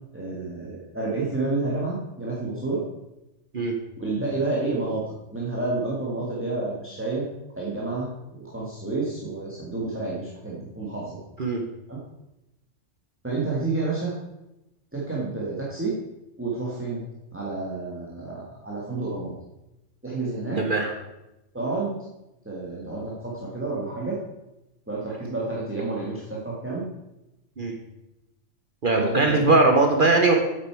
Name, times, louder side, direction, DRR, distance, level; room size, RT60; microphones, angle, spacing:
voice 1, 0.1-2.8 4.0-7.3 7.6-11.2 11.9-12.0 13.2-14.1 14.9-16.0 16.4-17.0 17.3-19.3 20.0-20.6 21.5-22.0 22.5-24.2 24.9-26.9 28.9-29.5, right 3 dB, 10° right, -6 dB, 1.8 m, -29 dB
voice 2, 20.6-20.9 27.6-27.8 28.8-30.3, right 3 dB, 45° right, 3 dB, 1.0 m, -20 dB
8.4 x 8.2 x 4.7 m, 0.94 s
omnidirectional pair, 1.3 m